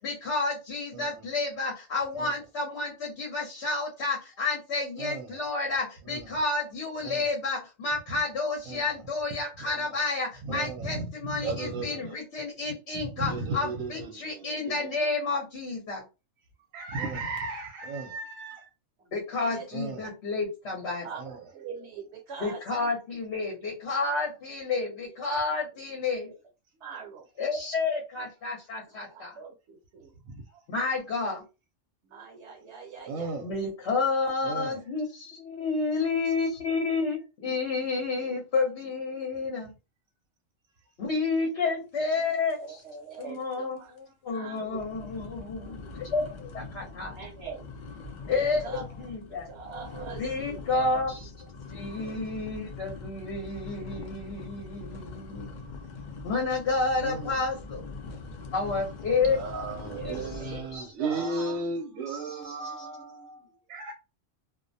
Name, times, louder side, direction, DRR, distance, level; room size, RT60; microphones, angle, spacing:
voice 1, 0.0-16.0 19.1-21.0 22.4-26.3 27.4-29.4 30.7-31.4 33.4-39.7 41.0-42.8 43.2-43.8 44.2-47.2 48.3-48.7 49.0-49.5 50.2-51.4 51.7-55.5 56.2-57.8 58.5-59.4 60.0-60.1 60.7-60.8 62.2-62.9, left 3 dB, 60° left, 0.9 m, -30 dB
voice 2, 9.6-10.0 10.4-12.2 12.9-14.9 16.7-18.6 19.7-20.0 21.2-21.3 30.3-30.4 33.1-33.5 34.4-34.8 57.0-57.3 59.2-63.9, right 3 dB, 85° right, 1.0 m, -35 dB
voice 3, 19.0-19.6 20.8-23.2 24.9-25.2 26.7-27.2 28.2-28.3 28.9-30.1 32.0-33.5 42.2-42.3 42.6-43.9 44.3-45.1 45.5-45.9 47.1-47.7 48.2-51.3 52.0-52.2 59.4-63.6, right 6 dB, 65° right, 1.0 m, -44 dB
sound 1, 42.5-42.9 43.1-43.5 44.0-44.1 44.6-60.8, left 4 dB, 80° left, 0.4 m, -42 dB
2.4 x 2.1 x 2.6 m
omnidirectional pair, 1.4 m